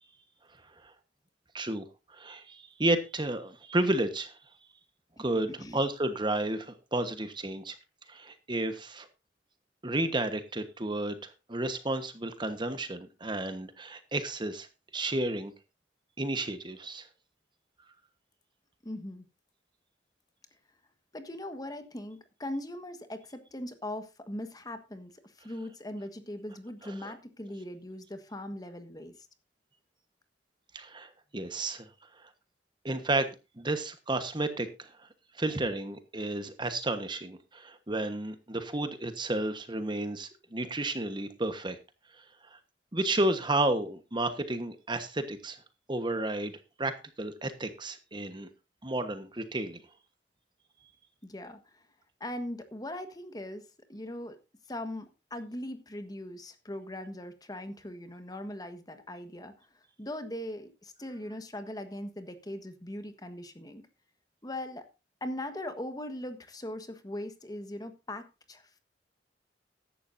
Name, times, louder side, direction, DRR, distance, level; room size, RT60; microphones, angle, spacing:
voice 1, 1.5-1.8 2.1-4.4 5.2-7.7 8.1-9.1 9.8-14.7 14.9-15.5 16.2-17.1 26.8-27.1 30.7-31.9 32.2-32.3 32.8-35.1 35.4-41.8 42.2-42.3 42.5-42.6 42.9-45.6 45.9-46.5 46.8-48.5 48.8-49.8, right 2 dB, 25° right, 9 dB, 1.3 m, -32 dB
voice 2, 18.8-19.2 21.1-25.1 25.4-29.1 51.2-51.8 52.2-53.6 53.9-54.4 54.7-59.7 60.0-63.8 64.4-64.9 65.2-68.8, left 1 dB, 20° left, 9 dB, 1.5 m, -40 dB
15.0 x 11.5 x 2.7 m, 0.27 s
head